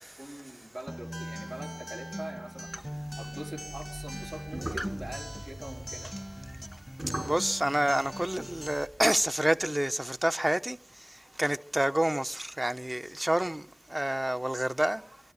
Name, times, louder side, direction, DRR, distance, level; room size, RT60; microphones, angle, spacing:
voice 1, 0.0-6.1, right 1 dB, 80° right, 4.6 m, -43 dB
Acoustic guitar, 0.9-8.9, equal, 15° right, 1.4 m, -40 dB
sound 1, 2.7-9.3, right 1 dB, 55° right, 7.2 m, -42 dB
voice 2, 7.2-10.8 11.4-13.6 13.9-15.0, right 1 dB, 30° right, 0.9 m, -28 dB
25.0 x 13.0 x 9.5 m
wide cardioid pair, 45°, 0 cm